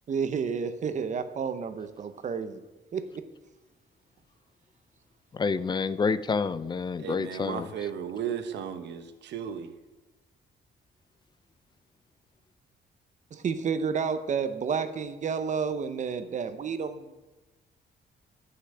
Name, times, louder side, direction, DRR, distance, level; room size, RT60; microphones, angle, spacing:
voice 1, 0.1-2.6 2.9-3.2 13.3-17.1, right 6 dB, 45° right, 10 dB, 0.7 m, -30 dB
voice 2, 5.4-7.7, left 5 dB, 25° left, 16 dB, 0.4 m, -28 dB
voice 3, 7.0-9.7, right 8 dB, 80° right, 9 dB, 0.9 m, -35 dB
9.9 x 5.8 x 7.7 m, 1.1 s
cardioid pair, 145°, 18 cm